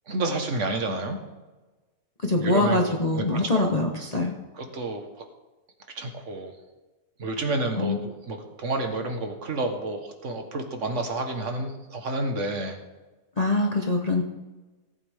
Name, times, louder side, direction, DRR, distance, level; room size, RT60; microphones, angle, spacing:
voice 1, 0.1-1.2 2.3-3.7 4.5-5.0 6.0-6.5 7.2-12.8, right 2 dB, 50° right, 5 dB, 1.7 m, -30 dB
voice 2, 2.2-4.3 7.8-8.0 13.4-14.2, left 2 dB, 30° left, 1 dB, 1.0 m, -23 dB
18.0 x 8.6 x 3.6 m, 1.2 s
omnidirectional pair, 1.6 m